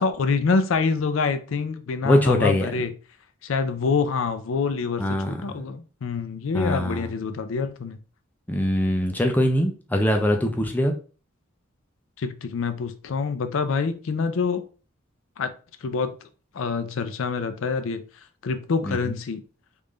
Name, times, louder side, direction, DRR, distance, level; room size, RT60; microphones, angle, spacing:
voice 1, 0.0-2.9 3.4-8.0 12.2-14.6 15.4-15.5 15.8-16.1 16.5-18.0 18.4-19.4, left 4 dB, 70° left, 0.4 m, -26 dB
voice 2, 2.0-2.7 5.0-5.6 6.5-7.1 8.5-10.9 18.8-19.0, equal, 10° left, 0.5 m, -22 dB
3.6 x 2.5 x 3.2 m
head